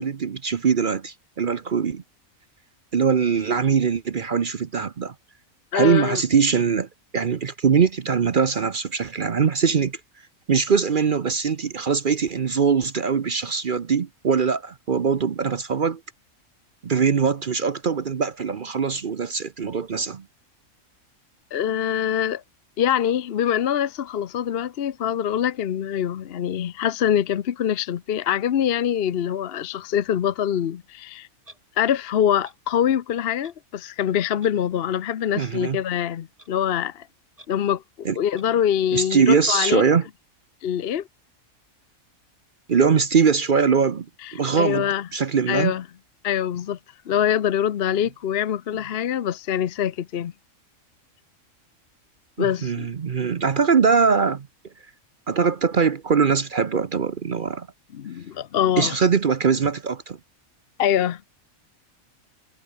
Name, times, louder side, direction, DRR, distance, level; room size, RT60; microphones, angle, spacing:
voice 1, 0.0-2.0 2.9-5.1 5.7-10.0 10.5-16.0 16.8-20.2 35.4-35.8 38.0-38.2 38.9-40.1 42.7-44.1 44.3-45.8 52.4-54.5 55.3-57.7 58.8-60.2, right 6 dB, 45° right, 0.8 m, -22 dB
voice 2, 5.7-6.2 21.5-22.4 22.8-31.3 31.8-37.1 37.5-37.8 38.2-39.8 40.6-41.1 44.2-45.1 45.5-45.8 46.2-46.8 47.1-50.3 52.4-52.9 57.9-59.0 60.8-61.2, left 9 dB, 55° left, 0.8 m, -24 dB
Clock, 31.4-31.6 32.4-32.6 33.4-33.5 34.4-34.5 35.4-35.5 36.4-36.5 37.4-37.5 38.4-38.5, right 1 dB, 25° right, 7.0 m, -48 dB
omnidirectional pair, 1.4 m